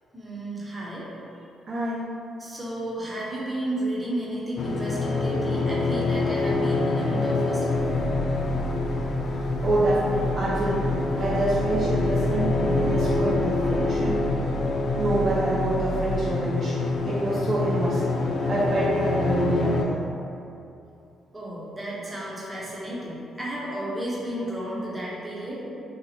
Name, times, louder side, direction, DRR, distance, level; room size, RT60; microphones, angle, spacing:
voice 1, 0.1-1.1 2.4-7.8 21.3-25.6, right 1 dB, 15° right, -6 dB, 0.9 m, -32 dB
voice 2, 1.7-2.1 9.6-14.3 14.9-16.8 17.0-18.1 18.5-20.0, right 1 dB, 50° right, -7 dB, 0.6 m, -26 dB
sound 1, 4.6-19.8, left 3 dB, 60° left, 0.3 m, -26 dB
sound 2, 7.7-16.3, right 4 dB, 30° left, 1.2 m, -34 dB
2.9 x 2.4 x 4.0 m, 2.7 s
cardioid pair, 90°, 0 cm